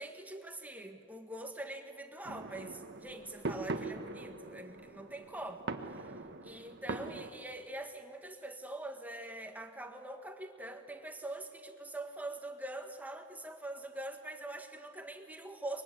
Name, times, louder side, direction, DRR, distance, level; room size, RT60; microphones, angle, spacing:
voice 1, 0.0-6.2 6.4-15.8, right 1 dB, 10° right, 5 dB, 1.6 m, -44 dB
sound 1, 2.3-7.3, right 3 dB, 55° right, 1.4 m, -42 dB
24.0 x 22.5 x 10.0 m, 2.3 s
head